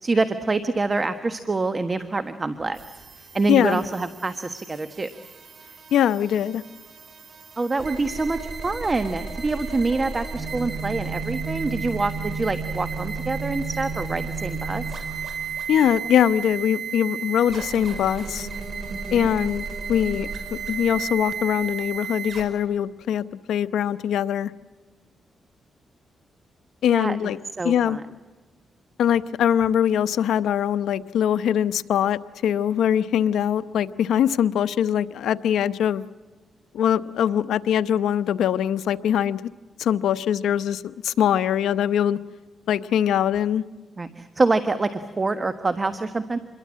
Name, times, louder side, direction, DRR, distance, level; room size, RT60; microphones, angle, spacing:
voice 1, 0.0-2.8 3.3-5.1 7.6-14.8 18.9-19.3 26.9-27.2 27.6-28.0 44.0-46.4, right 3 dB, 30° right, 10 dB, 1.4 m, -26 dB
sound 1, 2.7-22.4, right 5 dB, 60° right, 5.1 m, -33 dB
voice 2, 3.5-3.8 5.9-6.6 15.7-18.5 19.1-19.6 19.9-20.3 20.7-24.5 26.8-27.4 27.6-28.0 29.0-36.0 36.7-39.4 39.8-42.2 42.7-43.6, left 9 dB, 90° left, 13 dB, 0.8 m, -22 dB
27.5 x 22.5 x 7.5 m, 1.3 s
cardioid pair, 90°, 0 cm